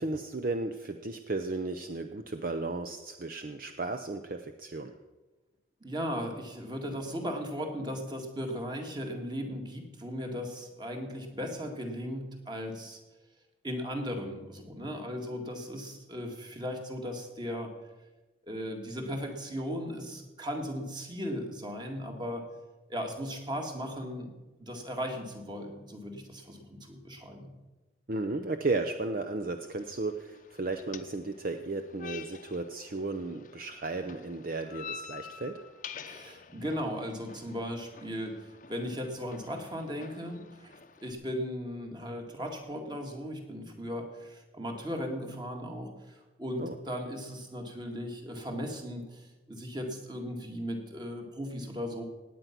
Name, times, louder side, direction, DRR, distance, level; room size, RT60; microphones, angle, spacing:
voice 1, 0.0-4.9 28.1-35.6 46.6-46.7, right 3 dB, 50° right, 7 dB, 0.6 m, -34 dB
voice 2, 5.8-13.0 13.6-17.8 18.4-22.5 22.9-24.3 24.6-27.5 36.1-52.0, equal, 25° right, 3 dB, 1.9 m, -37 dB
sound 1, 29.6-41.1, left 5 dB, 45° left, 0.7 m, -48 dB
17.0 x 9.3 x 5.9 m, 1.1 s
head